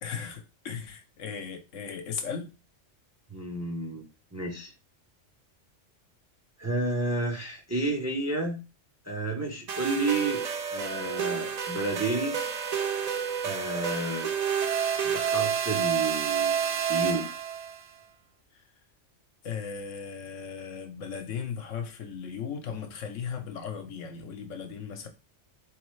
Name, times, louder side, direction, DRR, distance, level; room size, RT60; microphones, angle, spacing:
voice 1, 0.0-2.5 19.4-25.1, left 6 dB, 80° left, 1.1 m, -37 dB
voice 2, 3.3-4.0 4.3-4.7 6.6-8.6 9.0-10.4 10.7-12.4 13.4-14.3 15.0-17.3, right 2 dB, 15° right, 0.6 m, -31 dB
sound 1, 9.7-17.8, right 7 dB, 75° right, 0.3 m, -29 dB
4.0 x 3.2 x 3.2 m
omnidirectional pair, 1.3 m